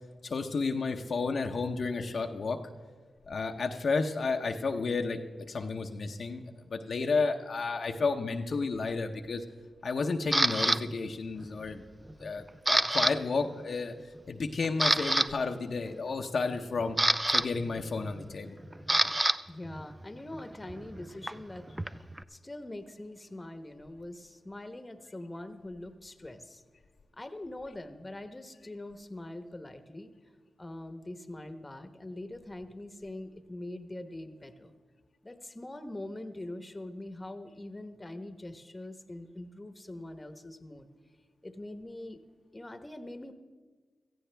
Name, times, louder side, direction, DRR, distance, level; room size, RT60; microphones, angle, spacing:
voice 1, 0.2-2.6 3.3-5.2 5.5-9.4 9.8-11.8 12.2-13.9 14.3-17.0 17.3-18.6, left 4 dB, 65° left, 3 dB, 0.8 m, -32 dB
Camera, 10.3-10.8 11.4-11.7 12.1-13.1 13.4-13.6 14.2-14.3 14.6-15.3 16.5-19.4 19.6-22.2, right 1 dB, 20° right, 0.5 m, -28 dB
voice 2, 19.5-21.7 22.3-26.6 27.1-30.1 30.6-34.7 35.2-40.9 41.4-42.2 42.5-43.3, left 1 dB, 25° left, 9 dB, 1.1 m, -43 dB
17.0 x 14.5 x 3.4 m, 1.5 s
cardioid pair, 45°, 0 cm